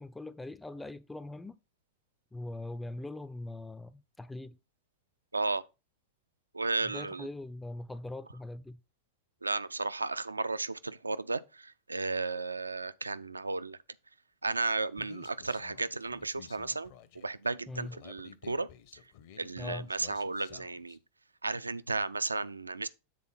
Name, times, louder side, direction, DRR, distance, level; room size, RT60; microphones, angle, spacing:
voice 1, 0.0-1.6 2.3-4.6 6.8-8.8 17.7-17.9 19.6-19.9, left 2 dB, 5° left, 0.3 m, -41 dB
voice 2, 5.3-5.6 6.5-7.3 9.4-13.8 14.4-18.7 19.4-21.0 21.4-22.9, right 3 dB, 80° right, 0.3 m, -34 dB
Human voice, 15.0-21.0, left 9 dB, 50° left, 0.7 m, -53 dB
7.6 x 3.8 x 5.5 m
figure-of-eight pair, 90°, 0 cm